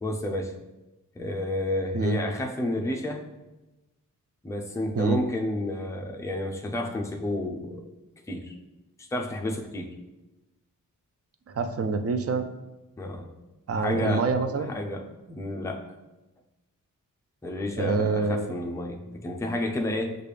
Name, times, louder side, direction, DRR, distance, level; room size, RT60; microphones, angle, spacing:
voice 1, 0.0-0.5 1.2-3.2 4.4-7.8 8.3-8.5 9.1-9.9 13.0-13.3 13.8-14.3 14.6-15.8 17.4-20.1, left 1 dB, 10° left, 1 dB, 0.5 m, -30 dB
voice 2, 11.5-12.5 13.7-14.7 17.8-18.5, right 4 dB, 45° right, 7 dB, 0.5 m, -26 dB
6.6 x 2.4 x 3.3 m, 1.0 s
cardioid pair, 80°, 33 cm